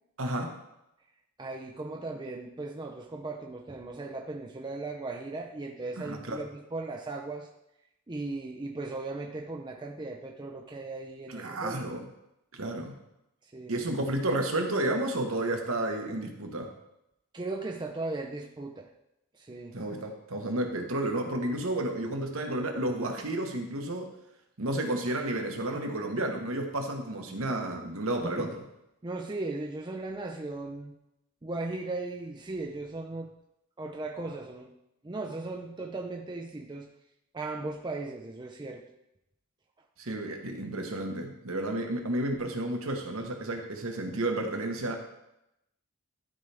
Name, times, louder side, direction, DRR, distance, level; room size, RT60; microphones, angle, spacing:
voice 1, 0.2-0.6 6.0-6.4 11.3-12.0 12.5-13.0 13.7-16.7 19.7-24.1 24.6-28.6 40.0-45.0, right 1 dB, 65° right, 3 dB, 1.2 m, -31 dB
voice 2, 1.4-7.5 8.1-11.8 13.4-13.8 17.3-18.9 19.3-19.8 28.2-28.5 29.0-30.9 31.4-33.3 33.8-34.7 35.0-36.9 37.3-38.9, right 2 dB, 20° right, 1 dB, 0.4 m, -37 dB
12.5 x 4.7 x 3.4 m, 0.85 s
head